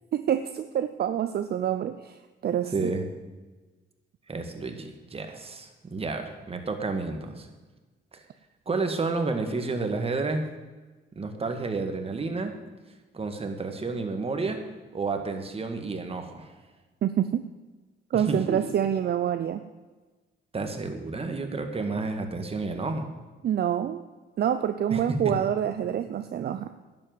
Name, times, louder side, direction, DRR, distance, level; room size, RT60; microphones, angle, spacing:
voice 1, 0.1-2.9 17.0-17.4 18.1-19.6 23.4-24.0 24.4-26.7, right 9 dB, 55° right, 10 dB, 0.6 m, -27 dB
voice 2, 2.7-3.1 4.3-7.5 8.1-8.2 8.7-10.5 11.2-12.6 13.1-14.6 14.9-16.5 18.1-18.6 20.5-23.1 24.9-25.3, right 3 dB, 30° right, 5 dB, 1.9 m, -30 dB
11.0 x 7.9 x 7.8 m, 1.3 s
cardioid pair, 90°, 20 cm